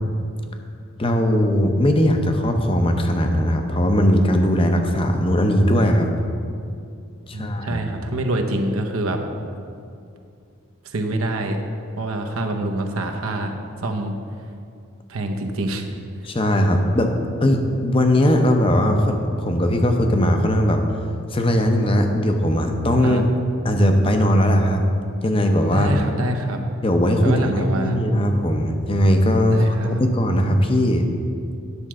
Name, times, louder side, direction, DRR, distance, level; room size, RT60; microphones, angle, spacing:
voice 1, 1.0-6.1 7.3-7.8 16.2-17.1 17.4-20.8 21.3-23.2 23.6-24.8 25.2-25.9 26.8-31.0, equal, 25° left, 5 dB, 0.6 m, -19 dB
voice 2, 7.3-9.2 10.8-11.6 12.0-13.5 13.8-14.1 15.1-15.8 23.0-23.2 25.7-26.6 27.2-28.0 29.5-30.0, right 1 dB, 75° right, 4 dB, 0.8 m, -25 dB
9.8 x 4.5 x 6.3 m, 2.4 s
head